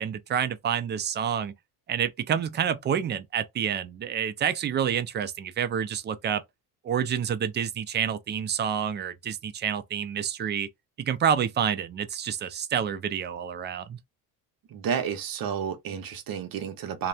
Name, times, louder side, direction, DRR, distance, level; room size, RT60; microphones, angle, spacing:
voice 1, 0.0-1.5 1.9-6.4 6.8-10.7 11.0-14.0, right 8 dB, 30° right, 0.4 m, -28 dB
voice 2, 14.7-17.1, right 8 dB, 55° right, 0.8 m, -31 dB
2.9 x 2.1 x 2.3 m
cardioid pair, 95°, 40 cm